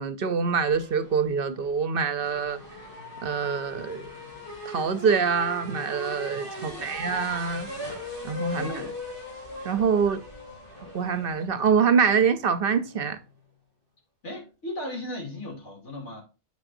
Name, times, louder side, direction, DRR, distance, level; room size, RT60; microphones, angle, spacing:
voice 1, 0.0-2.6 3.2-4.1 4.7-7.7 8.2-8.7 9.6-10.2 10.9-13.2, right 6 dB, 60° right, 0.8 m, -25 dB
sound 1, 0.7-13.2, left 2 dB, 50° left, 4.0 m, -40 dB
voice 2, 6.4-7.0 8.5-8.9 14.2-16.2, left 1 dB, 90° left, 3.0 m, -37 dB
8.8 x 5.9 x 2.6 m
omnidirectional pair, 1.2 m